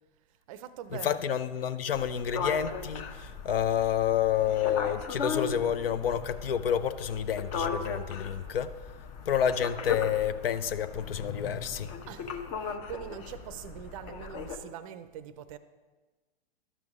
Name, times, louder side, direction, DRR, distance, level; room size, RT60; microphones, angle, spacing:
voice 1, 0.5-1.2 9.5-9.6 12.1-15.6, right 10 dB, 35° right, 0.5 m, -43 dB
sound 1, 0.8-14.3, left 5 dB, 15° left, 0.5 m, -51 dB
voice 2, 1.0-8.8 9.3-11.9, left 9 dB, 70° left, 0.6 m, -29 dB
sound 2, 1.9-14.6, left 5 dB, 40° left, 0.9 m, -38 dB
12.5 x 6.1 x 3.6 m
figure-of-eight pair, 115°, 30 cm